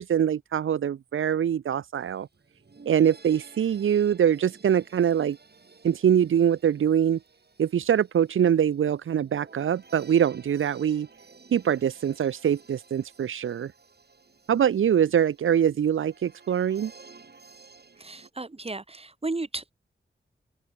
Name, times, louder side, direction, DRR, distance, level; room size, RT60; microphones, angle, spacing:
voice 1, 0.0-2.3 2.9-5.4 5.8-7.2 7.6-11.1 11.5-13.7 14.5-16.9, right 9 dB, 90° right, 0.5 m, -23 dB
sound 1, 2.0-2.1 2.3-18.3, right 4 dB, 55° right, 6.7 m, -54 dB
voice 2, 18.0-19.7, right 3 dB, 30° right, 2.3 m, -34 dB
open air
wide cardioid pair, 100°, 20 cm